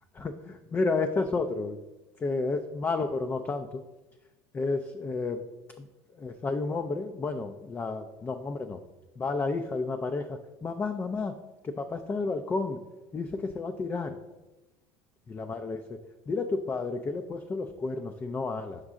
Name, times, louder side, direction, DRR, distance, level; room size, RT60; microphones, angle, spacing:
voice 1, 0.1-1.8 2.2-3.8 4.5-5.4 5.8-5.9 6.2-8.8 9.2-11.4 11.6-12.8 13.1-14.2 15.3-16.0 16.3-18.8, left 3 dB, 20° left, 7 dB, 0.3 m, -31 dB
5.4 x 5.0 x 3.6 m, 1.1 s
supercardioid pair, 110°, 10 cm